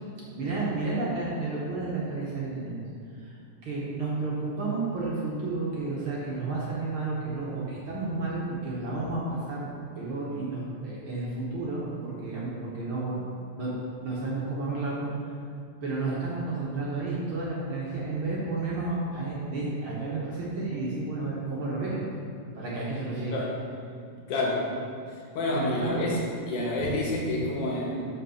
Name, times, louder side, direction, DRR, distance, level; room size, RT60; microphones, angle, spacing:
voice 1, 0.3-2.8 3.1-3.3 3.6-9.6 10.0-13.3 13.6-13.7 14.0-15.3 15.8-22.0 22.5-23.4 25.5-26.1 26.8-26.9, right 3 dB, 55° right, -6 dB, 1.5 m, -31 dB
voice 2, 24.3-24.7 25.1-26.2 26.5-28.0, left 2 dB, 75° left, -3 dB, 2.8 m, -29 dB
5.5 x 5.5 x 6.4 m, 2.4 s
omnidirectional pair, 3.6 m